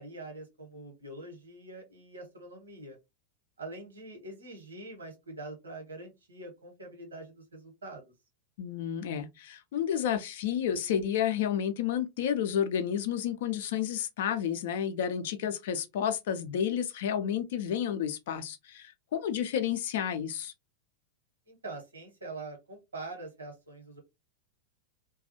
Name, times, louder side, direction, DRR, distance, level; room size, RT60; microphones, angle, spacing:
voice 1, 0.0-3.0 3.6-8.0 21.5-24.0, right 2 dB, 75° right, 1.1 m, -44 dB
voice 2, 8.6-20.5, left 9 dB, 55° left, 0.4 m, -31 dB
2.4 x 2.3 x 2.6 m
figure-of-eight pair, 90°, 0 cm